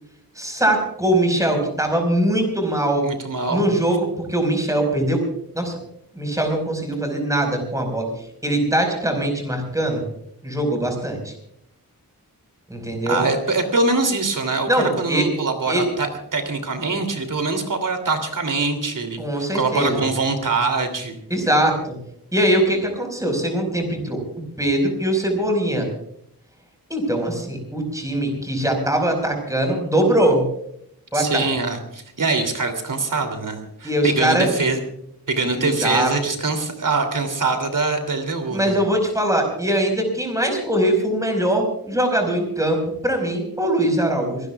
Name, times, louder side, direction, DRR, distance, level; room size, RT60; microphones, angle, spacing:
voice 1, 0.4-3.0 3.5-5.2 5.5-5.7 6.2-8.1 8.4-10.0 10.4-11.3 12.7-13.2 14.7-15.3 15.7-15.8 19.2-20.0 21.3-22.0 22.3-24.2 24.6-25.9 26.9-30.4 31.1-31.5 33.8-34.6 35.5-36.1 38.5-44.4, right 1 dB, 10° right, 3 dB, 5.0 m, -21 dB
voice 2, 3.0-3.7 13.0-21.2 31.1-34.8 35.3-38.8, right 3 dB, 60° right, 6 dB, 3.0 m, -23 dB
26.0 x 18.0 x 2.4 m, 0.72 s
wide cardioid pair, 140°, 36 cm